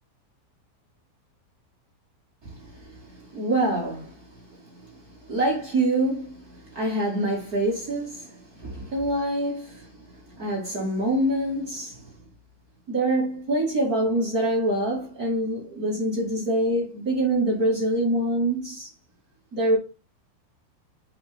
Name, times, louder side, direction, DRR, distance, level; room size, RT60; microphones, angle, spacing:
voice 1, 2.4-4.2 4.7-4.8 5.2-9.9 10.3-12.0 12.9-18.9 19.5-19.8, right 1 dB, 60° right, 0.9 m, -25 dB
7.8 x 5.8 x 3.6 m
omnidirectional pair, 5.7 m